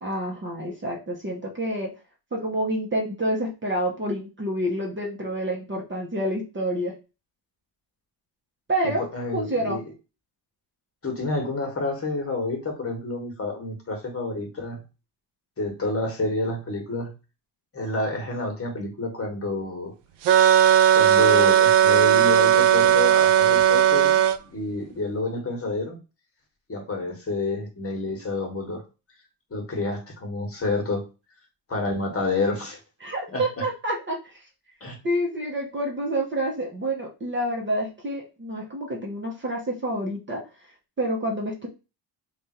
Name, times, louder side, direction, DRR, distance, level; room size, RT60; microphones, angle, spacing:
voice 1, 0.0-1.9 2.3-7.0 8.7-9.0 9.3-9.8 33.0-34.4 35.0-40.4 41.0-41.7, right 1 dB, 25° right, -1 dB, 0.9 m, -28 dB
voice 2, 8.8-9.8 11.0-14.8 15.6-17.1 17.7-19.9 20.9-24.2 24.5-26.0 26.7-28.8 29.5-31.0 31.7-32.8 33.3-33.6 34.8-35.0, left 2 dB, 30° left, 2 dB, 1.3 m, -29 dB
sound 1, 20.2-24.4, right 10 dB, 65° right, 0.6 m, -17 dB
3.5 x 2.5 x 4.2 m, 0.30 s
cardioid pair, 125°, 45 cm